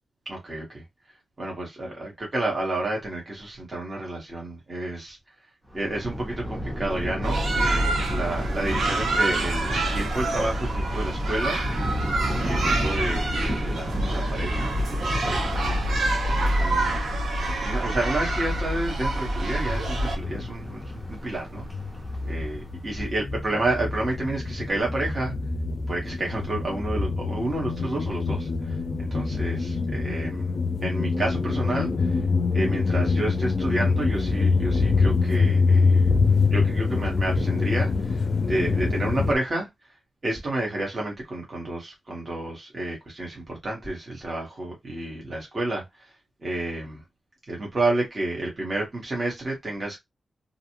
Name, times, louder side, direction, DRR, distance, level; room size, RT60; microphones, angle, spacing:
voice 1, 0.3-0.8 1.4-5.2 5.7-11.6 12.4-14.7 15.0-17.0 17.6-20.8 21.1-21.7 22.2-25.3 25.9-30.5 30.8-32.2 32.5-36.1 36.5-39.7 40.2-45.8 46.4-47.0 47.5-50.0, right 2 dB, 30° right, 1.2 m, -30 dB
Thunder, 5.7-23.1, equal, 15° right, 0.8 m, -34 dB
sound 1, 7.2-20.2, right 1 dB, 80° right, 0.9 m, -26 dB
sound 2, 19.7-21.3 21.6-39.4, left 4 dB, 45° left, 0.4 m, -25 dB
2.6 x 2.4 x 2.9 m
wide cardioid pair, 145°, 0 cm